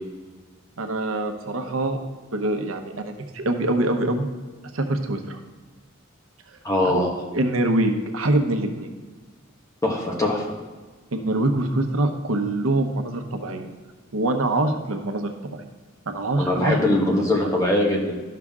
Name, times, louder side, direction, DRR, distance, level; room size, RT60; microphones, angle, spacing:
voice 1, 0.8-2.0 2.3-4.3 4.7-5.4 6.8-7.0 7.3-8.9 11.1-13.7 14.1-15.6 16.1-16.8, right 2 dB, 85° right, 6 dB, 0.9 m, -24 dB
voice 2, 6.6-7.2 9.8-10.4 16.4-18.2, left 1 dB, 15° left, -1 dB, 1.4 m, -22 dB
12.0 x 5.8 x 3.6 m, 1.3 s
head